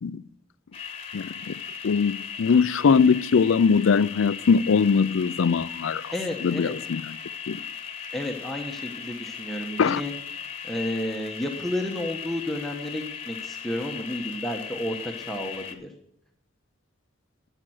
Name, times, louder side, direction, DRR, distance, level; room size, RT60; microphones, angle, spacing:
sound 1, 0.7-15.7, left 7 dB, 30° left, 1.3 m, -38 dB
voice 1, 1.1-1.6 1.8-6.1 6.4-7.2 7.5-7.6 9.8-10.0, left 5 dB, 70° left, 0.4 m, -21 dB
voice 2, 6.1-6.7 8.1-10.1 10.6-15.9, left 1 dB, ahead, 1.1 m, -31 dB
11.5 x 9.0 x 6.3 m
head